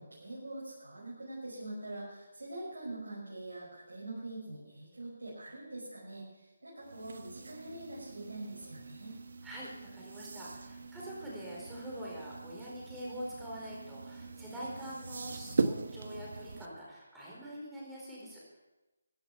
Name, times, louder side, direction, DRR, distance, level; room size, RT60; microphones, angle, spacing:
voice 1, 0.0-9.2, right 2 dB, 90° right, -7 dB, 5.9 m, -44 dB
sound 1, 6.8-16.7, right 4 dB, 60° right, 0.9 m, -40 dB
voice 2, 9.4-18.6, equal, 5° right, -6 dB, 4.5 m, -45 dB
15.5 x 9.9 x 5.8 m, 1.1 s
figure-of-eight pair, 165°, 0 cm